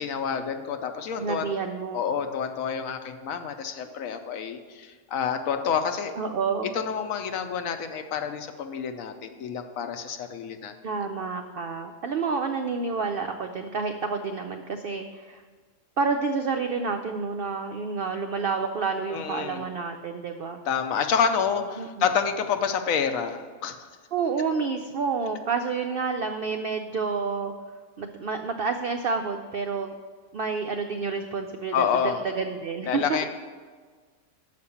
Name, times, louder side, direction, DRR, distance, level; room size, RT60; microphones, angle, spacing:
voice 1, 0.0-1.5 1.9-6.1 6.7-10.7 19.1-19.6 20.7-23.9 31.7-32.2 32.9-33.3, left 7 dB, 75° left, 8 dB, 1.0 m, -28 dB
voice 2, 1.2-2.1 6.2-6.8 10.8-15.4 16.0-20.6 21.8-22.1 24.1-27.5 28.0-29.9 30.3-31.9 32.2-33.3, right 5 dB, 80° right, 5 dB, 0.5 m, -29 dB
6.7 x 5.2 x 6.9 m, 1.5 s
omnidirectional pair, 1.5 m